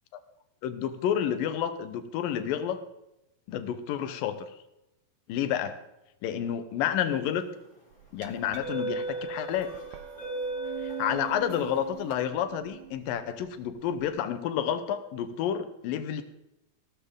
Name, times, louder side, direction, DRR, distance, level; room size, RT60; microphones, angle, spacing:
voice 1, 0.6-2.8 3.5-4.5 5.3-5.8 6.2-7.5 8.1-9.7 10.8-16.2, left 9 dB, 75° left, 10 dB, 2.6 m, -30 dB
sound 1, 7.3-7.6 8.3-12.1, right 2 dB, 20° left, 4.1 m, -36 dB
Glass, 7.9-14.1, right 12 dB, 75° right, 2.4 m, -44 dB
16.0 x 13.5 x 3.7 m, 0.89 s
omnidirectional pair, 4.3 m